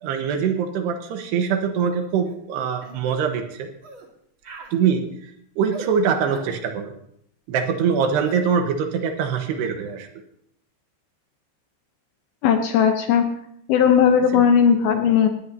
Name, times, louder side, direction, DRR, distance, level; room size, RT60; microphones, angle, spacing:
voice 1, 0.0-3.7 4.7-5.1 5.6-6.9 7.5-10.1 14.3-14.4, right 6 dB, 75° right, 5 dB, 3.1 m, -23 dB
sound 1, 2.3-2.4 2.8-3.0 3.8-4.1 4.4-4.8 5.7-5.9 6.3-6.6 8.2-8.5, right 3 dB, 45° right, 1.6 m, -38 dB
voice 2, 12.4-13.2 13.7-15.3, left 7 dB, 75° left, 5 dB, 2.5 m, -17 dB
19.5 x 16.5 x 2.8 m, 0.70 s
omnidirectional pair, 5.1 m